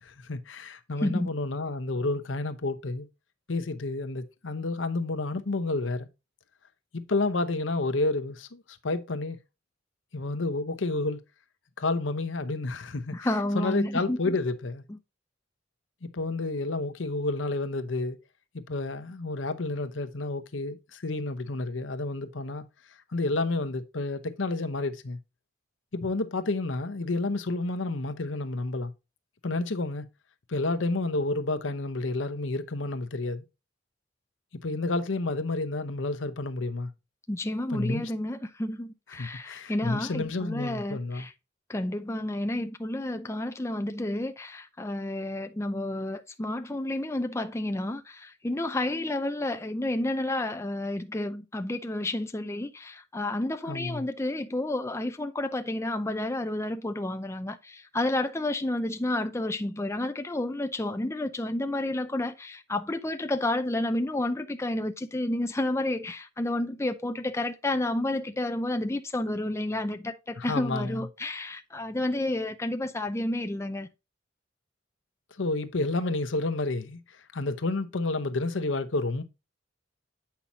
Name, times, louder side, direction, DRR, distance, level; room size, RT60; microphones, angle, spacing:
voice 1, 0.0-3.1 3.5-6.1 6.9-9.4 10.1-11.2 11.8-13.1 13.5-14.8 16.0-18.2 18.7-22.6 23.1-25.2 25.9-28.9 29.4-30.1 30.5-33.4 34.6-36.9 37.7-38.1 39.2-41.3 53.7-54.1 70.4-71.0 75.4-77.0 77.3-79.2, left 2 dB, 80° left, 0.9 m, -30 dB
voice 2, 1.0-1.3 13.1-14.3 14.9-15.0 37.3-41.3 41.7-73.9, left 1 dB, 15° left, 0.5 m, -30 dB
8.4 x 5.8 x 2.7 m
head